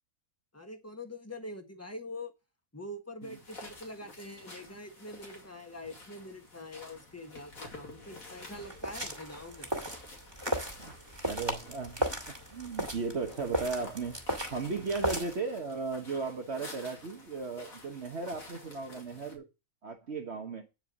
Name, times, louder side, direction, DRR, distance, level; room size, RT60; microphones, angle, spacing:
voice 1, 0.5-2.3 2.7-9.8, left 1 dB, 10° left, 1.5 m, -44 dB
sound 1, 3.2-19.4, left 2 dB, 85° left, 3.0 m, -50 dB
sound 2, 8.3-15.3, equal, 20° right, 1.9 m, -36 dB
voice 2, 11.2-12.1 12.5-14.1 14.5-19.4 19.8-20.7, right 4 dB, 55° right, 1.4 m, -36 dB
10.0 x 4.7 x 7.1 m
omnidirectional pair, 1.4 m